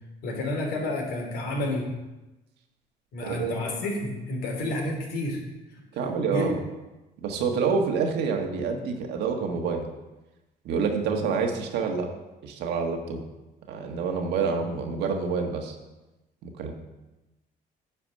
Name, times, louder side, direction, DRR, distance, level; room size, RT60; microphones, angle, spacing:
voice 1, 0.2-1.9 3.1-5.4 6.0-6.5, left 1 dB, 75° left, 0 dB, 3.3 m, -30 dB
voice 2, 3.2-3.5 5.9-6.5 7.2-9.9 10.6-12.1 12.4-13.2 13.7-15.8 16.4-16.7, right 5 dB, 80° right, 3 dB, 1.5 m, -27 dB
10.5 x 5.0 x 7.6 m, 1.0 s
cardioid pair, 110°, 17 cm